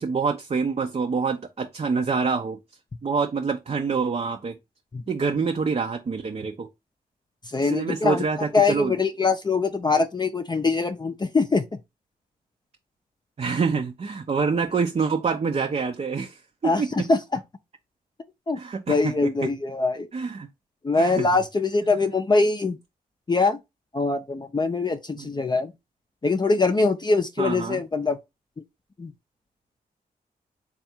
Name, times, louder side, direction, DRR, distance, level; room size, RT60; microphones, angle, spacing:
voice 1, 0.0-2.6 3.0-4.5 5.1-6.7 7.6-9.0 13.4-16.9 18.6-19.5 20.1-20.5 20.9-21.3 25.2-25.3 27.4-27.8, right 5 dB, 40° right, 0.5 m, -26 dB
voice 2, 7.5-8.3 8.5-11.6 16.6-17.4 18.5-18.6 18.9-20.1 20.8-22.8 23.3-23.6 23.9-25.7 26.2-28.2 29.0-29.1, left 3 dB, 25° left, 0.5 m, -23 dB
3.4 x 2.4 x 4.2 m
supercardioid pair, 40°, 17 cm